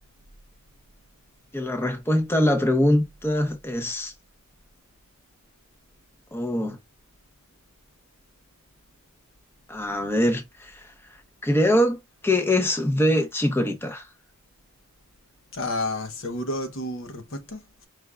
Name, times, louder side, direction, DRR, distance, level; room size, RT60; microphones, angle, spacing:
voice 1, 1.5-4.1 6.3-6.8 9.7-10.9 11.4-14.1, left 1 dB, 10° left, 0.7 m, -23 dB
voice 2, 15.5-17.9, left 1 dB, 60° left, 0.9 m, -31 dB
4.9 x 3.4 x 2.4 m
head